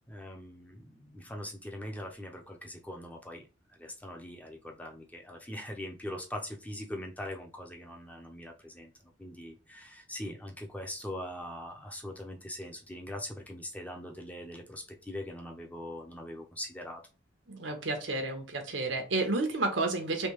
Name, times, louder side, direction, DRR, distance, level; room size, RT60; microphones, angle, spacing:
voice 1, 0.1-8.9 9.2-17.0, left 1 dB, 10° left, 2 dB, 0.5 m, -42 dB
voice 2, 17.5-20.3, right 2 dB, 90° right, 4 dB, 1.0 m, -31 dB
3.4 x 2.7 x 3.0 m, 0.32 s
head